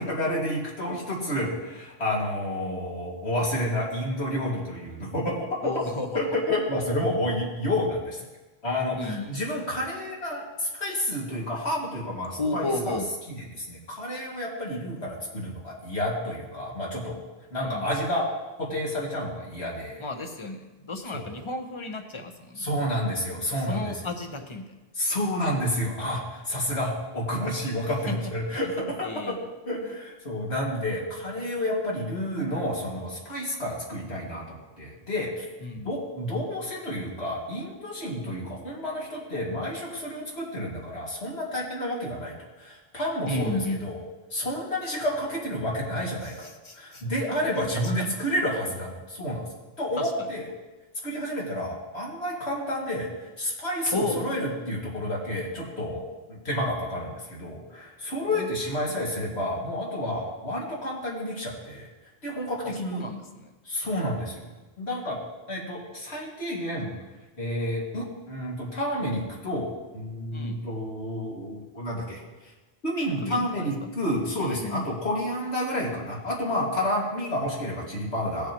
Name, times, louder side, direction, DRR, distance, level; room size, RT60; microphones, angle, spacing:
voice 1, 0.0-5.7 6.1-8.2 8.6-13.6 14.0-17.2 17.5-18.3 18.6-20.0 21.1-21.3 22.6-24.1 25.0-29.3 29.7-35.5 35.8-44.0 44.3-46.5 46.7-49.5 49.8-50.5 51.0-61.9 62.2-63.1 63.6-64.5 64.8-65.2 65.5-66.9 67.4-72.2 72.8-78.5, left 1 dB, 80° left, -4 dB, 2.5 m, -30 dB
voice 2, 5.6-6.4 9.0-9.4 12.4-13.1 17.6-17.9 20.0-23.0 23.7-24.6 28.1-28.2 28.5-28.7 29.0-29.4 35.6-35.9 43.3-43.8 46.2-47.0 47.5-48.1 50.0-50.1 53.9-54.4 58.3-58.5 62.9-63.5 70.3-70.6 73.2-73.9 74.4-74.8, left 2 dB, 30° left, 5 dB, 0.9 m, -33 dB
17.5 x 6.8 x 3.0 m, 1.2 s
omnidirectional pair, 1.1 m